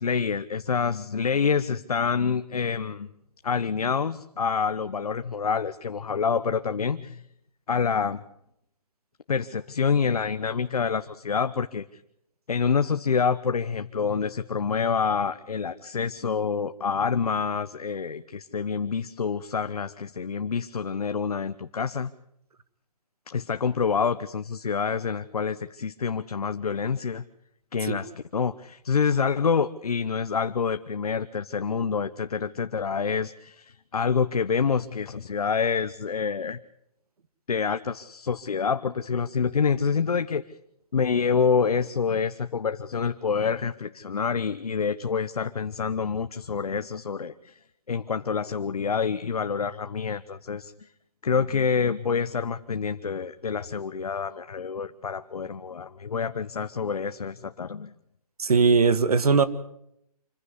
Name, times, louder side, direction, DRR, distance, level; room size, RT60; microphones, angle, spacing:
voice 1, 0.0-3.1 3.4-7.2 7.7-8.2 9.3-11.8 12.5-22.1 23.3-27.2 27.7-36.6 37.5-40.4 40.9-47.6 47.9-50.9 51.2-57.9, left 6 dB, 70° left, 10 dB, 1.0 m, -27 dB
voice 2, 58.4-59.4, right 4 dB, 70° right, 13 dB, 1.9 m, -19 dB
26.5 x 15.5 x 8.0 m, 0.75 s
hypercardioid pair, 175°, 20 cm